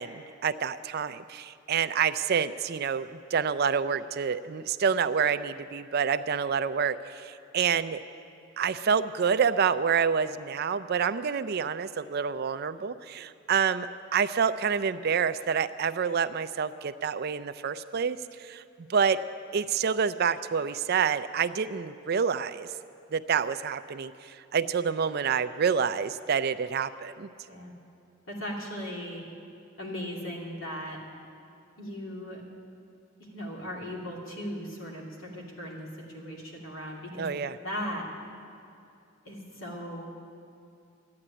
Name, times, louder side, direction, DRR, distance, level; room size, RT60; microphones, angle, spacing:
voice 1, 0.0-8.0 8.6-18.6 18.9-19.2 19.5-22.7 23.1-27.3 37.2-37.6, right 6 dB, 50° right, 13 dB, 0.4 m, -28 dB
voice 2, 28.3-29.2 29.8-31.0 31.8-32.4 33.2-37.3 37.6-38.1 39.2-40.1, equal, 85° left, -2 dB, 2.7 m, -37 dB
13.0 x 9.7 x 8.9 m, 2.7 s
head